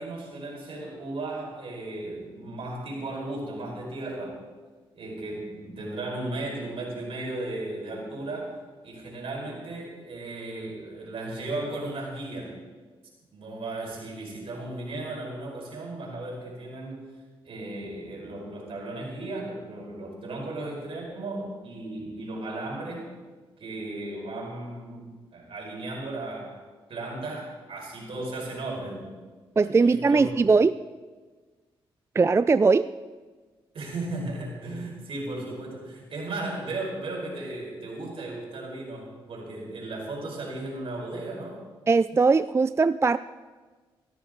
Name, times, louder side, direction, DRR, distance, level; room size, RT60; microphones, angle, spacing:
voice 1, 0.0-4.4 4.9-8.5 8.8-12.6 13.3-17.0 17.4-23.1 23.6-26.6 26.9-29.0 29.8-30.3 33.7-41.6, right 2 dB, 65° right, -2 dB, 5.0 m, -35 dB
voice 2, 29.6-30.8 32.2-32.9 41.9-43.2, right 4 dB, 25° right, 15 dB, 0.3 m, -20 dB
17.0 x 12.5 x 3.8 m, 1.4 s
cardioid pair, 65°, 10 cm